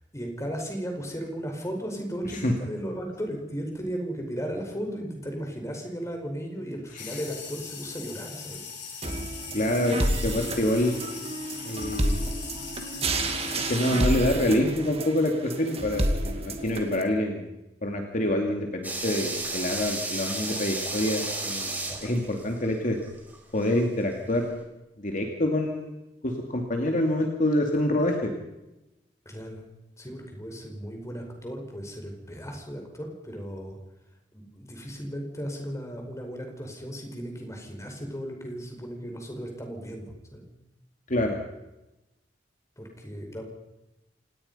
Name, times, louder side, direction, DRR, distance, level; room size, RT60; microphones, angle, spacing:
voice 1, 0.1-8.7 29.2-29.6 30.0-33.8 34.3-40.4 42.8-43.4, equal, 15° left, 2 dB, 5.2 m, -36 dB
sound 1, 7.0-14.0, left 6 dB, 90° left, 7.8 m, -40 dB
sound 2, 9.0-17.0, right 1 dB, 35° right, 2.5 m, -30 dB
voice 2, 9.5-11.0 11.6-12.2 13.7-17.5 17.8-23.0 23.5-24.6 25.0-26.0 26.2-28.3 41.1-41.4, left 1 dB, 45° left, 2 dB, 2.5 m, -26 dB
sound 3, 18.8-23.8 24.1-24.2, right 2 dB, 10° right, 5.5 m, -33 dB
27.5 x 18.5 x 5.6 m, 0.96 s
head